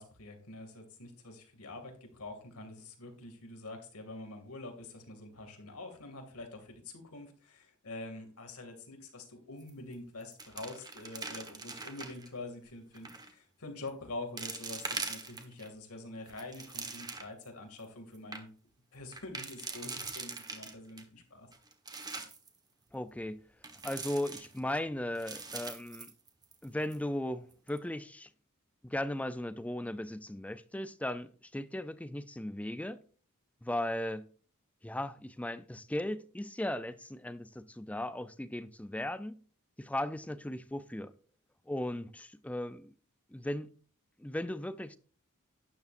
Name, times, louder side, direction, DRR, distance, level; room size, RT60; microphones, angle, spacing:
voice 1, 0.0-18.5 18.9-21.5, left 2 dB, 80° left, 2.5 m, -46 dB
sound 1, 9.6-9.9 10.2-12.3 12.9-13.3 13.9-14.0 14.4-15.7 16.2-17.4 17.8-17.9 18.1-18.4 19.1-21.0 21.5-22.5 23.6-24.8 25.2-26.7 26.9-27.0 27.5-27.8, right 4 dB, 20° right, 1.4 m, -42 dB
voice 2, 22.9-23.4 23.8-26.1 26.6-28.3 28.8-33.0 33.6-34.3 34.8-39.4 39.8-41.1 41.7-42.9 43.3-43.7 44.2-45.0, left 1 dB, 5° left, 0.5 m, -37 dB
12.0 x 9.7 x 2.6 m
head